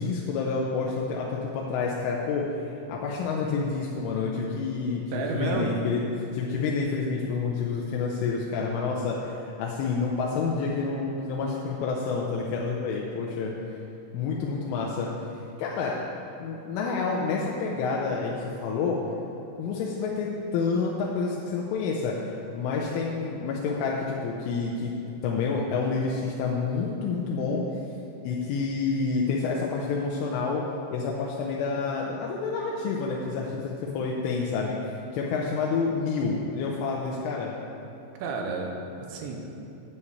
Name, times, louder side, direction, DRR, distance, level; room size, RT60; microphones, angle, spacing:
voice 1, 0.0-6.0 6.3-13.5 14.1-15.1 15.6-16.0 16.4-19.0 19.6-24.9 25.2-27.6 28.2-30.6 30.9-34.8 35.1-37.5, left 4 dB, 85° left, -3 dB, 3.3 m, -28 dB
voice 2, 5.1-5.7 38.2-39.4, right 4 dB, 75° right, 1 dB, 3.0 m, -31 dB
9.4 x 5.9 x 7.9 m, 2.9 s
omnidirectional pair, 5.6 m